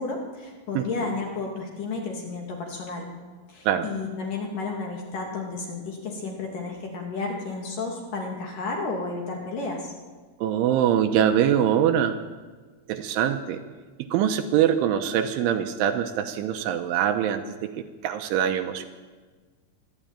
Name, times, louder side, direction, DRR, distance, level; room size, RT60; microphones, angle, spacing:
voice 1, 0.0-3.1 3.5-9.9, left 3 dB, 45° left, 0 dB, 3.6 m, -32 dB
voice 2, 0.8-1.1 3.7-3.9 10.4-12.2 12.9-13.6 14.0-18.9, right 9 dB, 80° right, 7 dB, 3.2 m, -24 dB
22.5 x 13.5 x 8.9 m, 1.4 s
omnidirectional pair, 5.8 m